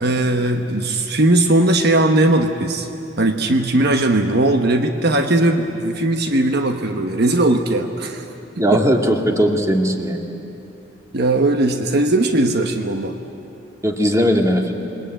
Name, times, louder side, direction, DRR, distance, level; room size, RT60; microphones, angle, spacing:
voice 1, 0.0-2.9 3.2-8.3 8.7-8.8 11.1-13.2, right 2 dB, 60° right, 6 dB, 1.2 m, -18 dB
voice 2, 8.6-10.2 13.8-14.7, equal, 15° right, 3 dB, 2.0 m, -18 dB
27.5 x 21.0 x 9.0 m, 2.8 s
head